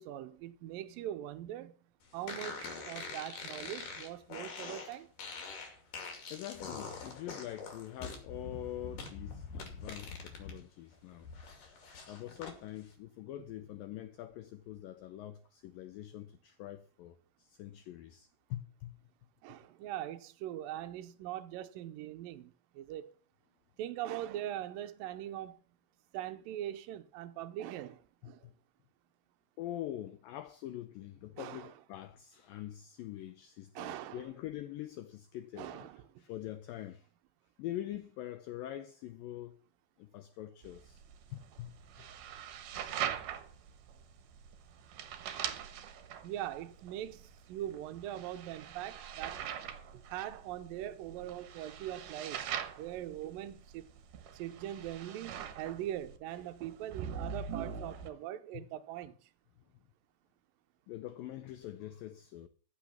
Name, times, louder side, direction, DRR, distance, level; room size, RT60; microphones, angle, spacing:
voice 1, 0.0-1.7 2.1-5.1 19.4-23.1 23.8-25.6 26.1-28.4 31.4-31.7 33.8-34.2 35.6-36.0 46.2-49.5 49.9-52.4 52.8-53.9 54.3-59.1, right 12 dB, 80° right, 2.1 m, -41 dB
sound 1, 2.3-10.6 10.9-12.6, left 4 dB, 55° left, 3.8 m, -44 dB
voice 2, 6.3-11.3 12.1-19.0 28.2-28.5 29.6-35.9 36.2-37.1 37.6-39.6 40.0-41.0 41.3-41.7 55.4-55.6 58.5-58.7 60.9-62.5, left 13 dB, 85° left, 2.0 m, -44 dB
sound 2, 40.6-58.1, right 8 dB, 65° right, 2.3 m, -43 dB
14.5 x 6.1 x 7.2 m
omnidirectional pair, 4.9 m